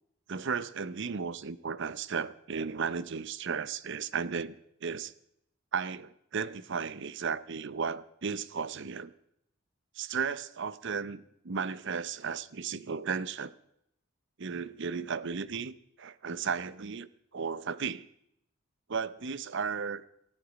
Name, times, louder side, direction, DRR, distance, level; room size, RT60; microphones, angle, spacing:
voice 1, 0.3-5.1 5.7-9.1 10.0-13.5 14.4-18.0 18.9-20.0, right 6 dB, 60° right, 0.7 m, -35 dB
19.0 x 13.0 x 5.1 m
head